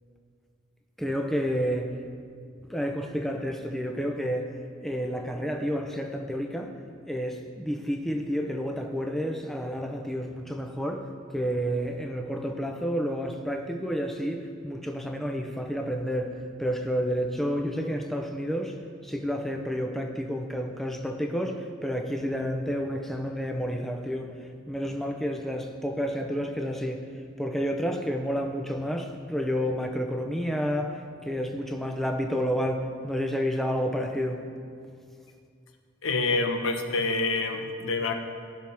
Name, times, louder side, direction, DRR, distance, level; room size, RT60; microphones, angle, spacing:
voice 1, 1.0-1.9 2.7-4.5 4.8-6.7 7.1-11.0 11.3-16.3 16.6-18.7 19.0-24.3 24.7-27.0 27.4-34.4, equal, ahead, 3 dB, 0.7 m, -30 dB
voice 2, 36.0-38.1, left 3 dB, 80° left, 4 dB, 1.1 m, -27 dB
18.5 x 6.3 x 3.5 m, 2.3 s
head